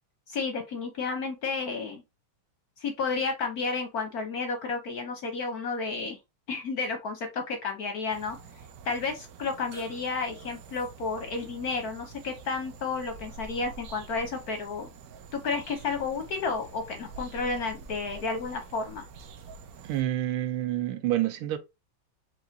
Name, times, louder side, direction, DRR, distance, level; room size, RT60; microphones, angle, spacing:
voice 1, 0.3-2.0 2.8-6.2 6.5-8.4 8.8-14.9 15.3-19.1, left 4 dB, 60° left, 1.0 m, -32 dB
sound 1, 8.1-20.0, right 4 dB, 70° right, 0.9 m, -47 dB
voice 2, 19.8-21.6, right 13 dB, 85° right, 1.6 m, -28 dB
4.8 x 2.8 x 3.8 m
omnidirectional pair, 2.3 m